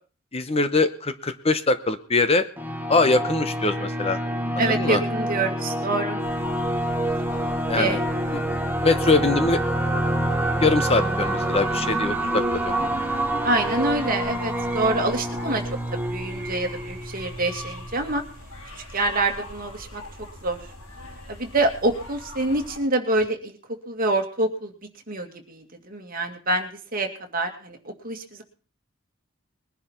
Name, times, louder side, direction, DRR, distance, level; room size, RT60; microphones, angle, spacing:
voice 1, 0.3-2.5 2.9-4.2 4.5-5.0 7.7-8.0 8.8-9.6 10.6-12.7, left 3 dB, 30° left, 11 dB, 0.9 m, -22 dB
sound 1, 2.6-17.9, right 1 dB, 10° right, 1.3 m, -27 dB
voice 2, 4.6-6.2 7.7-8.0 13.4-15.6 15.9-18.2 18.9-20.0 20.4-20.6 21.3-23.6 23.9-24.7 25.1-27.1 27.3-27.8 28.0-28.4, right 2 dB, 40° right, 4 dB, 2.3 m, -26 dB
sound 2, 6.2-22.8, left 1 dB, 90° left, 6.1 m, -42 dB
21.5 x 10.5 x 4.5 m, 0.40 s
head